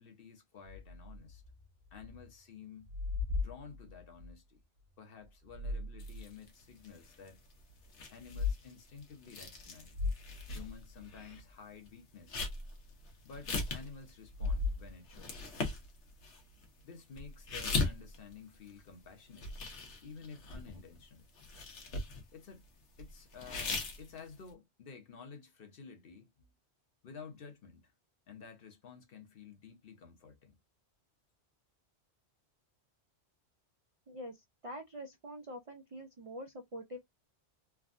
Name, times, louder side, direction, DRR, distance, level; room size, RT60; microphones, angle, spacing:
voice 1, 0.0-1.4 1.9-2.9 3.3-4.6 5.0-7.4 8.1-10.0 10.5-12.4 13.2-15.5 16.8-19.5 20.0-21.3 22.3-22.7 23.0-26.5 27.0-27.9 28.3-30.5, left 6 dB, 55° left, 0.9 m, -52 dB
sound 1, 0.6-2.3 2.6-4.3 5.2-6.3 6.8-6.9 8.1-8.6 9.0-9.1 9.6-9.7 9.9-11.2 14.2-15.3, left 4 dB, 70° right, 0.8 m, -38 dB
sound 2, 6.0-11.4 11.7-19.0 19.3-21.0 21.3-22.5 23.0-24.5, left 3 dB, 80° left, 1.1 m, -40 dB
voice 2, 34.1-37.0, equal, 50° right, 0.4 m, -45 dB
3.4 x 2.2 x 2.4 m
omnidirectional pair, 1.2 m